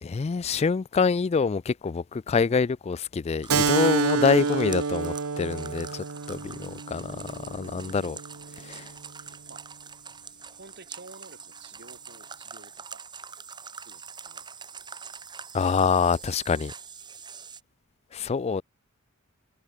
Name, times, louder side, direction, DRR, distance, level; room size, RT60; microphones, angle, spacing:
voice 1, 0.0-8.2 8.6-8.9 15.5-16.7 18.1-18.6, left 5 dB, 30° left, 0.3 m, -26 dB
sound 1, 3.4-17.6, right 6 dB, 20° right, 1.5 m, -44 dB
Keyboard (musical), 3.5-8.6, right 5 dB, 80° right, 0.9 m, -28 dB
voice 2, 9.2-9.7 10.5-13.0 13.8-14.5 14.9-15.0, right 3 dB, 50° right, 3.0 m, -51 dB
head